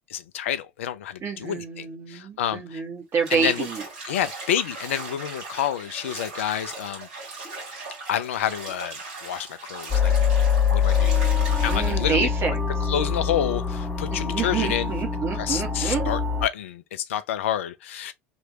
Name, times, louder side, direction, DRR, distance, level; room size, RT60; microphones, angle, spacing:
voice 1, 0.1-2.8 3.3-3.7 4.1-7.1 8.1-10.1 10.7-11.2 11.6-12.3 12.9-14.9 15.4-18.1, left 10 dB, 70° left, 0.4 m, -29 dB
voice 2, 1.2-3.8 11.7-12.6 14.1-16.1, right 5 dB, 40° right, 1.5 m, -28 dB
Bathtub (filling or washing), 3.2-12.0, right 3 dB, 65° right, 2.0 m, -38 dB
sound 1, 9.9-16.5, left 6 dB, 20° left, 1.1 m, -24 dB
3.2 x 3.0 x 2.8 m
figure-of-eight pair, 65°, 7 cm